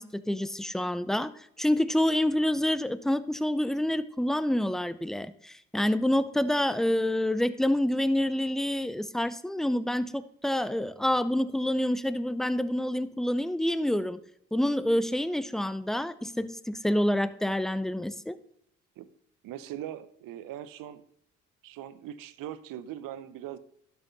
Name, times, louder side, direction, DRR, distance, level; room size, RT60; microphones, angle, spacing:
voice 1, 0.0-14.2 14.5-18.4, left 1 dB, ahead, 15 dB, 0.6 m, -27 dB
voice 2, 19.4-21.0 21.6-23.6, right 11 dB, 70° right, 14 dB, 0.8 m, -40 dB
12.0 x 6.2 x 4.0 m, 0.70 s
hypercardioid pair, 55°, 35 cm